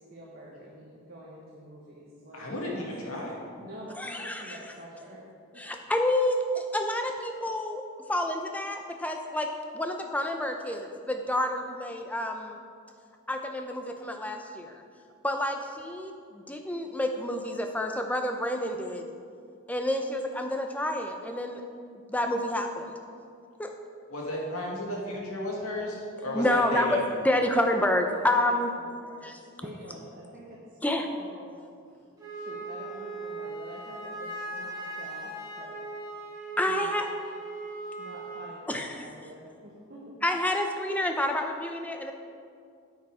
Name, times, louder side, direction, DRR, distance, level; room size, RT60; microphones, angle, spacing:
voice 1, 0.0-2.5 2.7-3.3 3.6-5.2 5.5-5.6 26.2-26.7 27.3-27.5 28.1-31.5 32.3-35.7 36.7-36.9 38.0-40.1, equal, 40° right, -5 dB, 1.3 m, -46 dB
voice 2, 2.3-3.4 24.1-27.0, left 1 dB, 75° left, -3 dB, 2.2 m, -33 dB
voice 3, 4.0-4.6 5.6-7.8 8.1-12.6 13.3-14.8 15.2-19.1 19.7-21.6 22.1-23.0 23.6-23.7 26.3-26.9 27.2-28.7 29.2-29.4 30.8-31.1 36.6-37.1 38.7-39.1 40.2-42.1, left 1 dB, 5° left, 4 dB, 0.6 m, -29 dB
Wind instrument woodwind instrument, 32.2-38.5, right 2 dB, 15° right, 2.1 m, -39 dB
9.0 x 8.6 x 4.9 m, 2.3 s
head